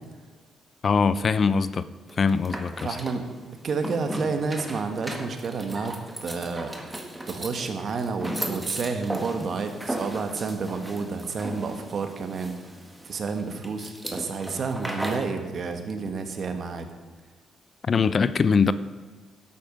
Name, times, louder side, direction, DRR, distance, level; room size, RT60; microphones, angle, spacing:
voice 1, 0.8-1.8 2.2-2.9 17.8-18.7, left 5 dB, 45° left, 15 dB, 0.5 m, -22 dB
sound 1, 2.1-15.3, right 1 dB, 10° right, 1.7 m, -36 dB
voice 2, 2.8-3.3 3.6-6.0 6.2-12.6 13.0-16.9, right 4 dB, 50° right, 6 dB, 1.5 m, -30 dB
12.0 x 8.6 x 5.3 m, 1.4 s
cardioid pair, 90°, 0 cm